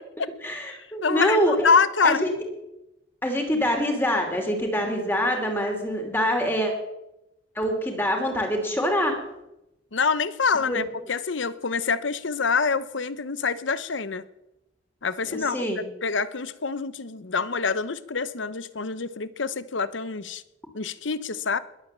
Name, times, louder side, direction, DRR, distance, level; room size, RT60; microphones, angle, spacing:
voice 1, 0.4-1.7 2.0-2.3 3.2-6.7 7.5-9.2 10.7-10.8 15.2-15.8, equal, 10° left, 3 dB, 3.0 m, -25 dB
voice 2, 1.0-2.2 9.9-14.2 15.0-15.6 16.0-20.4 20.7-21.6, left 5 dB, 90° left, 16 dB, 0.9 m, -26 dB
21.5 x 8.9 x 7.4 m, 0.91 s
head